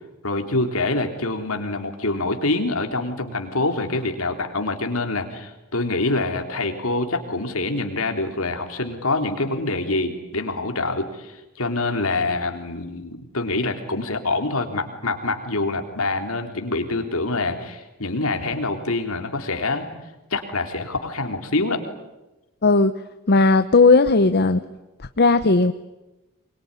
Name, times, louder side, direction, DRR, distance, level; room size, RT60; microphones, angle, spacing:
voice 1, 0.2-19.9 20.3-21.8, left 2 dB, 65° left, 5 dB, 3.6 m, -25 dB
voice 2, 22.6-22.9 23.3-24.6 25.2-25.7, left 3 dB, 45° left, 10 dB, 0.9 m, -16 dB
24.0 x 22.5 x 9.9 m, 1.0 s
head